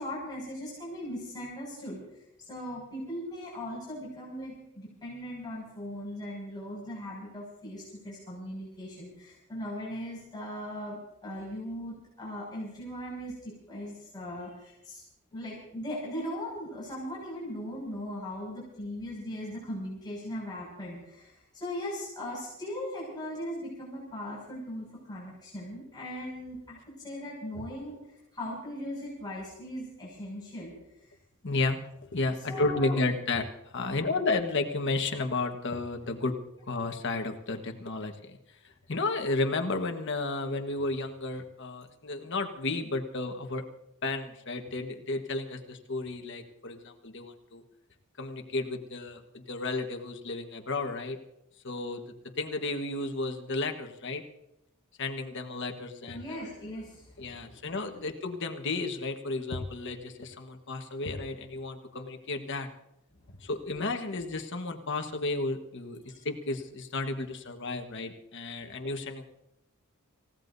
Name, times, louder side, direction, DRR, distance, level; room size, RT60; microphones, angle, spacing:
voice 1, 0.0-2.0 2.4-15.0 15.3-28.0 28.3-30.7 31.0-31.1 32.5-33.0 33.8-34.1 56.1-57.4 66.1-66.2, left 1 dB, 20° left, -6 dB, 6.2 m, -39 dB
voice 2, 31.4-31.8 32.1-33.5 33.7-36.3 36.7-38.4 38.6-43.6 44.0-47.6 48.2-51.2 51.6-52.0 52.4-54.2 55.0-56.4 57.2-62.7 63.4-69.2, left 3 dB, 55° left, 5 dB, 1.4 m, -32 dB
28.0 x 16.5 x 2.7 m, 0.86 s
head